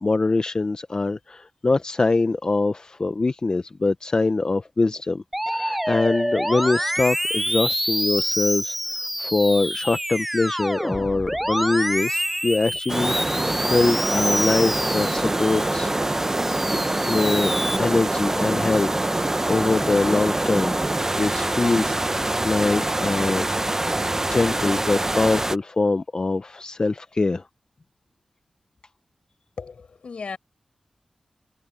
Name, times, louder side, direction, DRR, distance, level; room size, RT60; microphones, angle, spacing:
voice 1, 0.0-15.9 17.1-20.8 21.1-23.5 24.2-27.5, left 3 dB, 40° left, 0.9 m, -23 dB
Musical instrument, 5.3-15.7 16.2-17.8, equal, 5° right, 0.5 m, -27 dB
sound 1, 12.9-25.6, right 2 dB, 20° right, 0.9 m, -24 dB
voice 2, 29.6-30.4, left 5 dB, 70° left, 6.6 m, -35 dB
cardioid pair, 60°, 2 cm